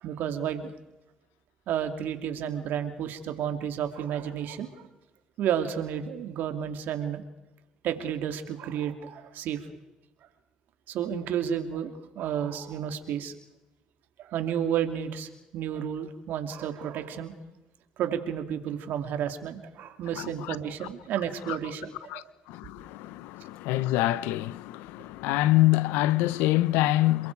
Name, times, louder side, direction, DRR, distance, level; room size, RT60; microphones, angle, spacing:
voice 1, 0.0-0.7 1.7-4.9 5.4-7.2 7.8-9.6 10.9-13.3 14.2-17.3 18.0-22.2, right 9 dB, 70° right, 2.7 m, -31 dB
voice 2, 20.2-20.6 21.5-21.6 22.1-27.3, left 17 dB, 85° left, 0.8 m, -26 dB
28.0 x 22.0 x 4.8 m
supercardioid pair, 65°, 3 cm